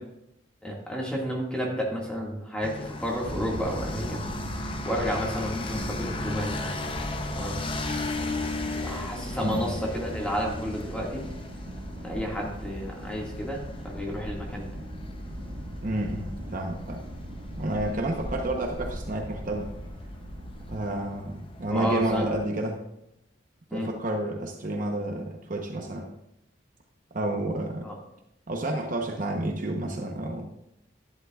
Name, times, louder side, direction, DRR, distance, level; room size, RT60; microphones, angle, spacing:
voice 1, 0.6-4.2 4.8-6.7 7.2-7.6 8.8-11.2 12.0-14.7 21.7-22.3 23.7-23.9 27.8-28.0, equal, 5° left, -3 dB, 1.8 m, -31 dB
sound 1, 2.6-22.4, left 2 dB, 25° left, 0.6 m, -37 dB
sound 2, 3.2-20.8, equal, 65° right, 1.1 m, -39 dB
voice 2, 15.8-17.0 17.6-19.7 20.7-22.8 23.7-26.1 27.1-27.9 28.5-30.5, right 1 dB, 40° right, 2 dB, 0.9 m, -30 dB
11.5 x 10.5 x 2.4 m, 0.83 s
head